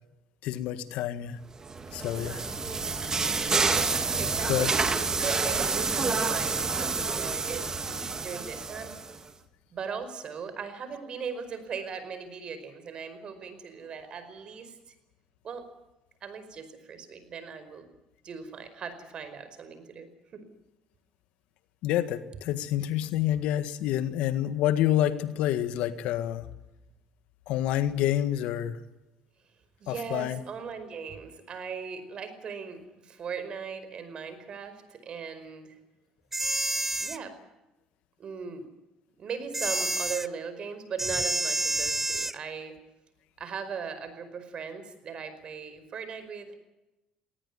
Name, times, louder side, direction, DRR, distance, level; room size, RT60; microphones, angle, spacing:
voice 1, 0.4-1.4 1.9-2.4 4.5-4.7 21.8-26.4 27.5-28.8 29.9-30.4, left 12 dB, 80° left, 12 dB, 1.7 m, -28 dB
sound 1, 1.6-9.2, right 4 dB, 30° right, 2.3 m, -28 dB
voice 2, 3.6-4.7 5.2-9.0 9.7-14.8 15.4-15.6 16.2-17.9 18.2-20.4 29.8-35.8 37.0-37.3 38.2-38.6 39.2-42.7 43.4-46.6, right 6 dB, 50° right, 11 dB, 5.1 m, -38 dB
sound 2, 36.3-37.2 39.5-40.3 41.0-42.4, right 2 dB, 15° right, 1.0 m, -29 dB
19.0 x 18.5 x 9.8 m, 0.97 s
supercardioid pair, 85°, 2 cm